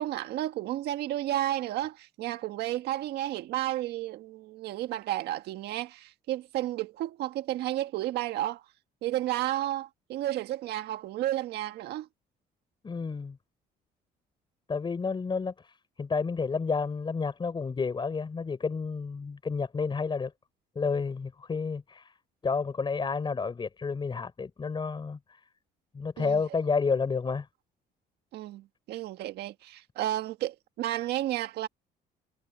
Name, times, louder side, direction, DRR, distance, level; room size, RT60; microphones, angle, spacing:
voice 1, 0.0-8.6 9.0-12.1 26.2-26.4 28.3-31.7, right 14 dB, 80° right, 1.6 m, -32 dB
voice 2, 12.8-13.4 14.7-20.3 20.7-22.1 22.4-25.4 25.9-27.5, left 5 dB, 30° left, 4.6 m, -30 dB
cardioid pair, 110°, 17 cm